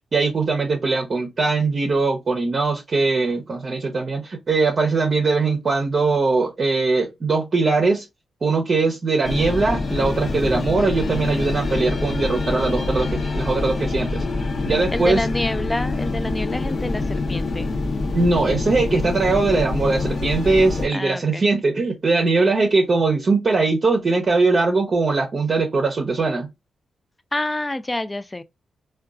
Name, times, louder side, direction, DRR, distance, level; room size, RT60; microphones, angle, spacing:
voice 1, 0.1-8.1 8.4-14.2 14.6-15.2 18.1-26.5, right 3 dB, 50° right, 0.6 m, -21 dB
sound 1, 9.2-20.9, left 3 dB, 50° left, 0.7 m, -25 dB
voice 2, 14.9-17.7 20.9-21.4 27.3-28.4, left 1 dB, 20° left, 0.3 m, -27 dB
3.7 x 2.2 x 2.3 m
cardioid pair, 65°, 0 cm